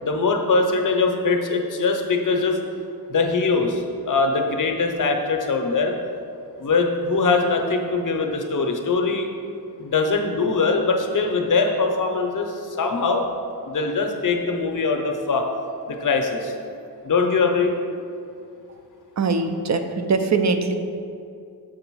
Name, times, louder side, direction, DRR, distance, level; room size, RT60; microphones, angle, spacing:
voice 1, 0.0-2.6 3.1-5.9 6.6-9.3 9.8-13.2 13.6-15.5 15.9-16.5 17.0-17.7, left 4 dB, 50° left, 3 dB, 0.7 m, -22 dB
voice 2, 19.2-20.7, right 4 dB, 45° right, 7 dB, 0.4 m, -22 dB
6.6 x 3.8 x 6.0 m, 2.5 s
wide cardioid pair, 170°, 40 cm